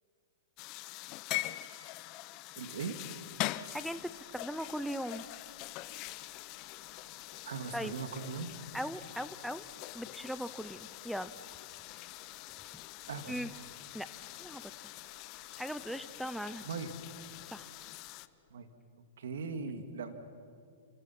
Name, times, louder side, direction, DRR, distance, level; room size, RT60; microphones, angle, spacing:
sound 1, 0.6-18.3, left 18 dB, 40° left, 0.8 m, -44 dB
voice 1, 2.6-3.0 7.4-8.5 13.1-13.3 16.6-16.9 18.5-18.7 19.2-20.2, right 5 dB, 75° right, 7 dB, 2.5 m, -39 dB
sound 2, 3.1-18.6, left 7 dB, 60° left, 3.1 m, -61 dB
voice 2, 3.7-5.3 7.7-7.9 8.7-9.6 9.9-11.3 13.3-13.5 13.9-14.1 14.4-14.7 15.6-16.7 17.5-17.7, equal, ahead, 14 dB, 0.6 m, -39 dB
29.5 x 28.0 x 6.0 m, 2.3 s
hypercardioid pair, 135°, 0 cm